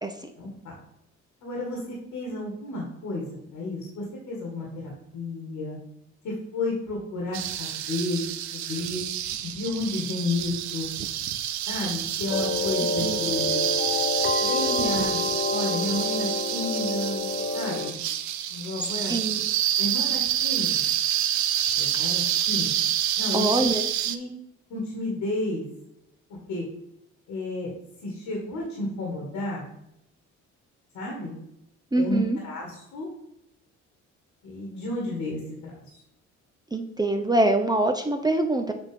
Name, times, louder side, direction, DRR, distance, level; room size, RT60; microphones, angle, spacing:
voice 1, 0.4-0.8 1.4-3.2 3.5-5.8 6.2-9.0 9.4-10.9 11.7-13.7 14.4-15.2 15.5-18.0 18.5-19.1 19.8-20.9 21.8-22.7 23.2-23.7 24.0-24.3 24.7-25.7 26.5-26.7 27.3-27.7 28.0-29.7 30.9-31.4 31.9-33.1 34.4-35.4, left 2 dB, 80° left, -2 dB, 2.0 m, -32 dB
sound 1, 7.3-24.2, right 10 dB, 70° right, 0.6 m, -28 dB
sound 2, 12.3-17.9, left 4 dB, 40° left, 0.5 m, -28 dB
voice 2, 19.1-19.4 23.3-23.8 31.9-32.4 36.7-38.7, right 2 dB, 15° right, 4 dB, 0.6 m, -24 dB
8.0 x 2.9 x 5.2 m, 0.81 s
cardioid pair, 90°, 30 cm